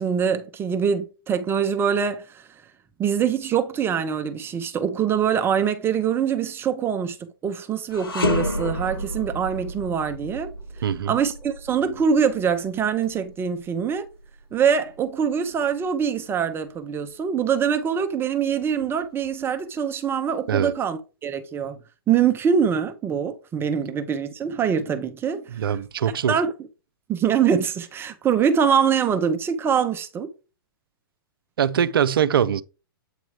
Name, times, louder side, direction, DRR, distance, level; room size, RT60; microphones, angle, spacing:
voice 1, 0.0-2.5 3.0-7.2 7.4-10.5 11.1-14.1 14.5-21.8 22.1-25.6 26.3-26.5 27.1-30.3, right 7 dB, 20° right, 0.7 m, -24 dB
sound 1, 7.9-17.2 17.6-17.8 18.6-19.5, left 1 dB, 80° left, 1.4 m, -32 dB
voice 2, 10.8-11.2 20.5-20.7 25.5-26.4 31.6-32.6, right 8 dB, 70° right, 0.5 m, -22 dB
8.3 x 3.0 x 4.8 m
hypercardioid pair, 115°, 12 cm